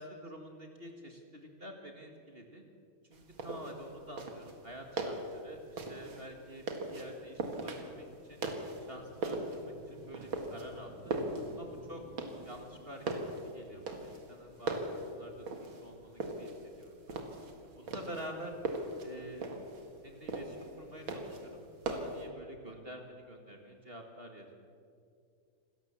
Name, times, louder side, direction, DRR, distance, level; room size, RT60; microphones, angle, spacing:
voice 1, 0.0-2.6 3.1-8.5 8.9-11.1 11.5-12.0 12.4-17.2 17.7-18.5 19.0-19.5 20.0-24.5, right 1 dB, 30° right, 2 dB, 1.9 m, -48 dB
sound 1, 3.1-22.3, right 2 dB, 65° right, 2.7 m, -40 dB
26.5 x 13.5 x 7.2 m, 2.3 s
omnidirectional pair, 2.4 m